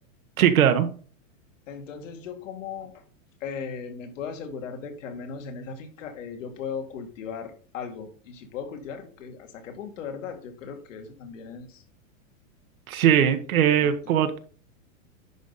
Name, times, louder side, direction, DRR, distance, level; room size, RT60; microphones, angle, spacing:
voice 1, 0.4-0.9 12.9-14.3, right 9 dB, 80° right, 8 dB, 1.3 m, -20 dB
voice 2, 1.7-2.9 3.4-11.7 13.8-13.9, left 6 dB, 65° left, 5 dB, 2.2 m, -37 dB
10.5 x 5.2 x 4.1 m, 0.42 s
supercardioid pair, 165°, 41 cm